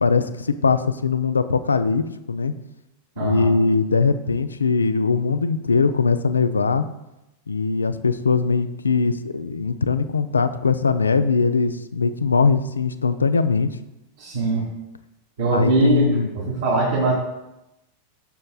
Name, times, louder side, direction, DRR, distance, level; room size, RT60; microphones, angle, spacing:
voice 1, 0.0-2.5 3.2-6.8 7.5-13.7 15.5-16.3, left 4 dB, 75° left, 12 dB, 0.5 m, -21 dB
voice 2, 3.2-3.5 14.2-14.7 15.4-17.1, right 3 dB, 60° right, -7 dB, 2.6 m, -21 dB
16.0 x 6.5 x 2.3 m, 0.92 s
figure-of-eight pair, 90°, 0 cm